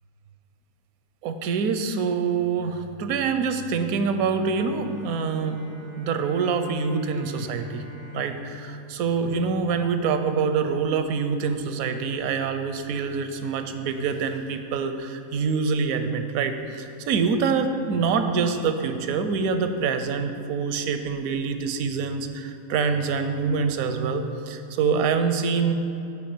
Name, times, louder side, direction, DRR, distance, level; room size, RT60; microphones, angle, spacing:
voice 1, 1.2-5.6 6.0-7.8 8.1-25.7, right 5 dB, 80° right, 8 dB, 1.1 m, -25 dB
Bowed string instrument, 4.4-10.3, left 5 dB, 80° left, 1.9 m, -43 dB
9.7 x 3.6 x 6.6 m, 2.8 s
omnidirectional pair, 1.5 m